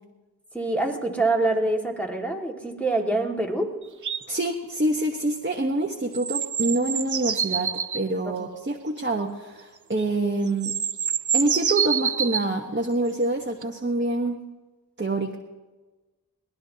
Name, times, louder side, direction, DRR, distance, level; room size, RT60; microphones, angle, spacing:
voice 1, 0.5-3.7 8.3-8.4, right 2 dB, 5° left, 0 dB, 2.0 m, -25 dB
sound 1, 4.0-4.2 6.1-8.0 10.0-10.1 10.5-12.5 13.6-13.7, right 7 dB, 55° right, 0.6 m, -26 dB
voice 2, 4.3-10.7 11.3-14.4 15.0-15.3, right 2 dB, 30° right, 1 dB, 1.1 m, -26 dB
23.5 x 18.5 x 2.8 m, 1.2 s
wide cardioid pair, 40°, 36 cm